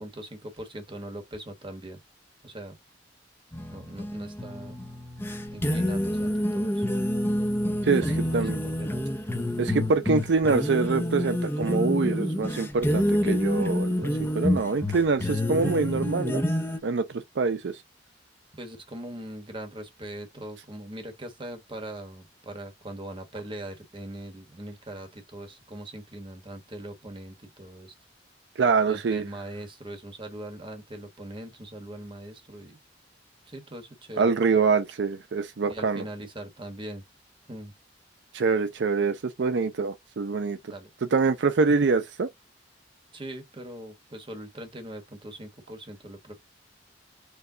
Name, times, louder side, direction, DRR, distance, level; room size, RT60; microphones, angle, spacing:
voice 1, 0.0-2.0 2.4-2.7 3.7-4.8 5.5-6.9 8.0-9.0 18.6-27.9 28.9-32.8 33.5-34.3 35.7-37.0 37.5-37.7 40.7-40.9 43.1-46.4, right 1 dB, 30° right, 1.1 m, -41 dB
sound 1, 3.5-16.8, left 1 dB, 15° left, 0.7 m, -28 dB
voice 2, 7.8-8.6 9.6-16.4 16.8-17.8 28.6-29.3 34.2-36.0 38.3-40.7 41.1-42.3, right 4 dB, 70° right, 0.5 m, -25 dB
4.6 x 2.3 x 3.7 m
head